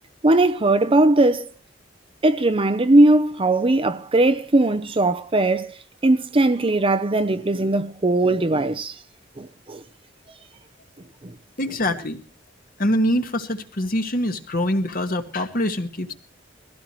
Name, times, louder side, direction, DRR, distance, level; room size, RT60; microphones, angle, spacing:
voice 1, 0.2-1.5 2.2-5.7 6.0-8.9 9.4-9.8 11.2-11.3, right 2 dB, 30° right, 0.7 m, -19 dB
voice 2, 11.6-12.2 12.8-16.1, left 1 dB, 50° left, 1.7 m, -24 dB
22.0 x 16.0 x 3.1 m
head